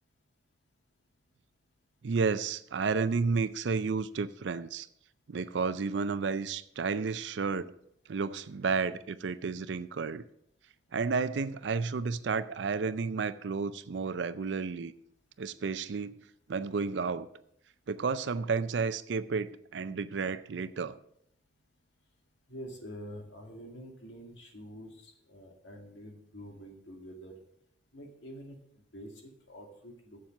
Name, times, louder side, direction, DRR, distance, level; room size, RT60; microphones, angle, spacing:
voice 1, 2.0-4.9 5.3-7.7 8.1-10.2 10.9-14.9 15.4-16.2 16.5-17.3 17.9-21.0, right 5 dB, 70° right, 13 dB, 0.5 m, -31 dB
voice 2, 22.5-27.3 27.9-30.2, equal, 80° left, 2 dB, 2.2 m, -47 dB
7.4 x 7.2 x 6.3 m, 0.71 s
head